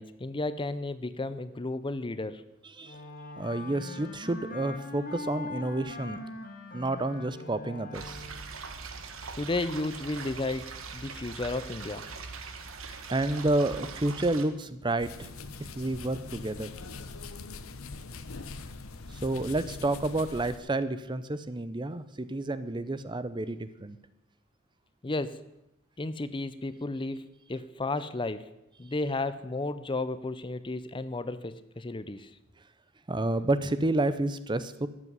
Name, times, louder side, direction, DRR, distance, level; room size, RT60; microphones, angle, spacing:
voice 1, 0.0-2.4 9.4-12.1 25.0-25.4 26.0-28.5 28.8-32.3, left 2 dB, 25° left, 14 dB, 0.6 m, -33 dB
Wind instrument woodwind instrument, 2.8-8.6, left 2 dB, 45° left, 2.2 m, -41 dB
voice 2, 3.4-6.2 6.7-8.2 13.1-15.3 15.6-16.7 19.1-24.0 33.1-34.9, right 2 dB, 20° right, 13 dB, 0.6 m, -30 dB
sound 1, 7.9-14.4, right 4 dB, 75° right, 1.6 m, -41 dB
sound 2, 15.0-20.6, left 3 dB, 85° left, 1.1 m, -42 dB
13.5 x 7.5 x 9.7 m, 0.87 s
head